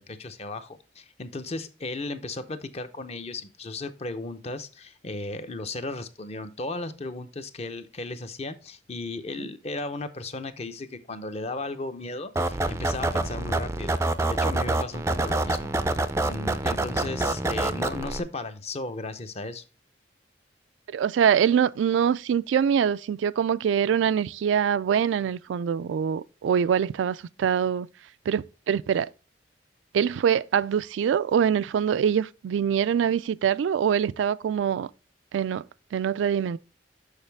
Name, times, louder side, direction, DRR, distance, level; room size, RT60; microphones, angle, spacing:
voice 1, 0.0-13.9 14.2-15.7 16.2-19.6, left 2 dB, 35° left, 0.6 m, -35 dB
sound 1, 12.4-18.2, right 2 dB, 15° right, 0.4 m, -26 dB
voice 2, 20.9-27.9 28.3-29.1 29.9-34.9 35.3-35.6 35.9-36.6, right 8 dB, 85° right, 0.3 m, -24 dB
6.5 x 5.8 x 3.3 m
head